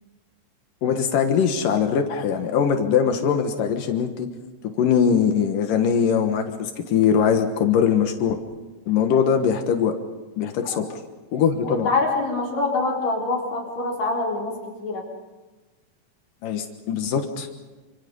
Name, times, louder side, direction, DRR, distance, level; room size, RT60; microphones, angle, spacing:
voice 1, 0.8-4.3 4.8-8.4 8.9-9.9 10.4-10.8 11.3-11.9 16.4-17.5, left 7 dB, 85° left, 5 dB, 3.1 m, -21 dB
voice 2, 11.6-15.0, left 3 dB, 55° left, -2 dB, 5.4 m, -25 dB
28.5 x 27.0 x 5.5 m, 1.2 s
omnidirectional pair, 3.7 m